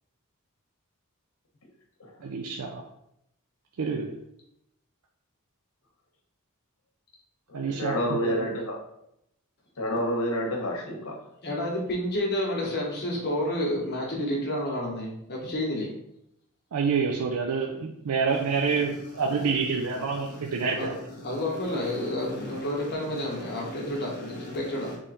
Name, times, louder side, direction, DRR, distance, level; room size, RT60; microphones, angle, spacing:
voice 1, 2.2-2.8 3.8-4.2 7.5-8.5 16.7-20.9, right 5 dB, 85° right, 1 dB, 0.5 m, -28 dB
voice 2, 7.5-8.8 9.8-11.1, equal, 75° left, 0 dB, 1.2 m, -29 dB
voice 3, 11.4-15.9 18.3-25.0, left 1 dB, 50° left, -2 dB, 1.2 m, -31 dB
3.7 x 3.2 x 4.1 m, 0.78 s
head